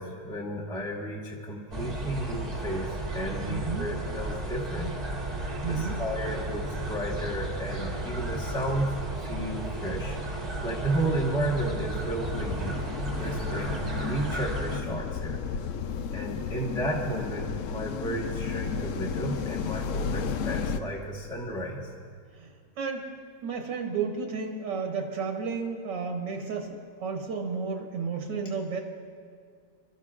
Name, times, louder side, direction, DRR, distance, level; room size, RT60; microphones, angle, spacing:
voice 1, 0.0-4.9 5.2-8.9 9.2-10.2 10.6-12.8 13.2-15.4 16.1-21.9, right 1 dB, 5° left, -2 dB, 1.2 m, -33 dB
sound 1, 1.7-14.8, right 1 dB, 25° right, 1.3 m, -34 dB
voice 2, 3.5-3.9 5.6-6.0 22.4-22.5 22.8-23.1 23.4-28.8, right 5 dB, 80° right, 2 dB, 1.9 m, -32 dB
sound 2, 12.3-20.8, left 6 dB, 75° left, 0.7 m, -33 dB
26.5 x 13.0 x 2.5 m, 2.1 s
omnidirectional pair, 1.9 m